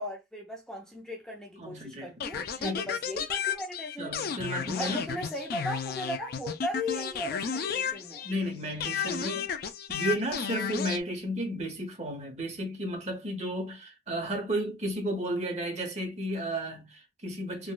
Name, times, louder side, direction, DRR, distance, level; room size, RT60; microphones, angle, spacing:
voice 1, 0.0-4.1 4.8-8.2, left 1 dB, 5° left, 0.6 m, -37 dB
voice 2, 1.6-2.1 2.6-2.9 4.0-5.0 8.2-9.5 9.9-17.7, right 1 dB, 40° right, 1.0 m, -33 dB
sound 1, 2.2-8.5 8.8-11.0, left 7 dB, 60° left, 0.4 m, -33 dB
3.8 x 2.2 x 2.2 m
head